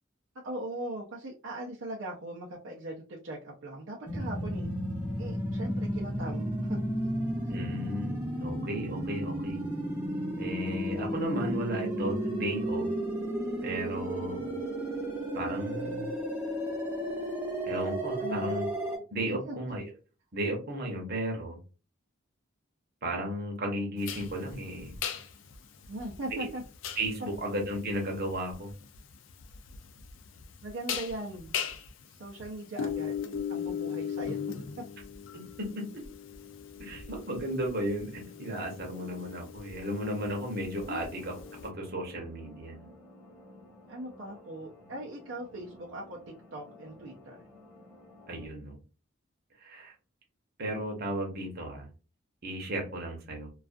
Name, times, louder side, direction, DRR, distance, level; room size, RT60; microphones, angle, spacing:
voice 1, 0.4-4.7 5.2-6.8 18.2-18.6 19.3-19.6 25.9-26.6 30.6-31.5 32.1-33.1 33.5-34.4 40.8-41.1 43.9-47.4, right 1 dB, 70° right, -3 dB, 0.5 m, -40 dB
sound 1, 4.1-19.0, right 1 dB, 10° right, 0.7 m, -33 dB
voice 2, 7.5-9.6 10.4-12.9 13.6-14.5 15.3-16.1 17.6-18.7 19.1-19.9 20.3-21.6 23.0-25.0 26.3-26.5 27.0-28.7 35.3-35.9 36.8-41.3 41.6-42.9 48.3-48.8 49.6-49.9 50.6-51.9 52.4-53.5, right 1 dB, 50° right, 1 dB, 0.9 m, -34 dB
sound 2, 24.0-41.7, left 7 dB, 70° left, 0.4 m, -39 dB
sound 3, 40.7-48.5, left 1 dB, 5° left, 1.1 m, -54 dB
2.3 x 2.3 x 2.5 m, 0.33 s
head